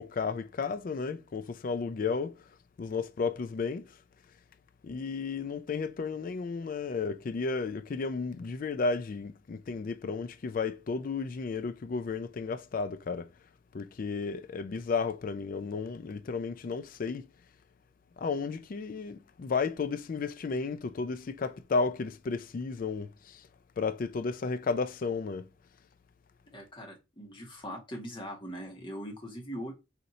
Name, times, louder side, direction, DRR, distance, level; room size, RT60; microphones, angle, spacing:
voice 1, 0.0-2.4 2.8-4.0 4.8-13.3 13.7-17.3 18.2-23.5 23.8-25.5, left 4 dB, 45° left, 0.3 m, -33 dB
voice 2, 26.5-29.7, equal, 25° left, 1.2 m, -41 dB
4.2 x 2.7 x 4.0 m
head